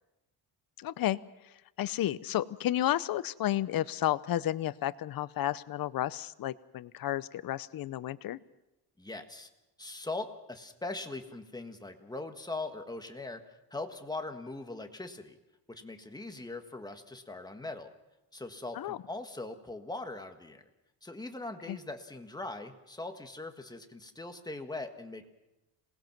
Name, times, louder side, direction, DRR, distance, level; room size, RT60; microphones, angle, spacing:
voice 1, 0.8-1.2 1.4-8.4 18.7-19.0 21.7-21.8, left 13 dB, 60° left, 17 dB, 0.7 m, -32 dB
voice 2, 9.0-9.5 9.8-13.4 13.7-15.4 15.7-17.9 18.3-20.6 21.0-25.3, left 2 dB, 10° left, 6 dB, 1.5 m, -41 dB
27.0 x 19.5 x 6.0 m, 0.95 s
cardioid pair, 145°, 41 cm